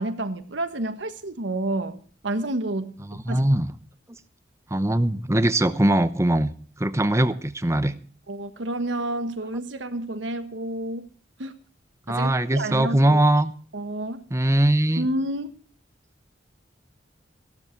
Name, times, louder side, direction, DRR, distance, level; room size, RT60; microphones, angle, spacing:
voice 1, 0.0-2.0 2.2-2.9 3.3-3.4 8.3-11.1 11.4-11.5 12.1-13.2 13.7-14.2 15.0-15.6, right 1 dB, 80° right, 9 dB, 1.4 m, -29 dB
voice 2, 3.1-3.7 4.7-8.0 12.1-13.5 14.3-15.1, right 1 dB, 15° right, 12 dB, 0.8 m, -21 dB
15.0 x 12.5 x 4.6 m, 0.42 s
head